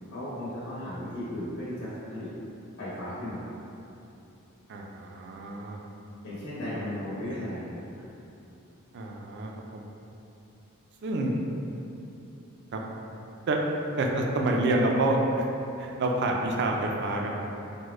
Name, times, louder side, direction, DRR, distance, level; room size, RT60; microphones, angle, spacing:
voice 1, 0.1-2.3 2.8-3.5 6.2-8.0, left 1 dB, 60° left, -11 dB, 1.1 m, -35 dB
voice 2, 4.7-5.8 8.9-9.8 11.0-11.4 12.7-12.8 13.5-13.6 14.0-15.5 15.8-17.4, right 2 dB, 55° right, 1 dB, 0.4 m, -27 dB
3.6 x 2.1 x 3.1 m, 2.9 s
head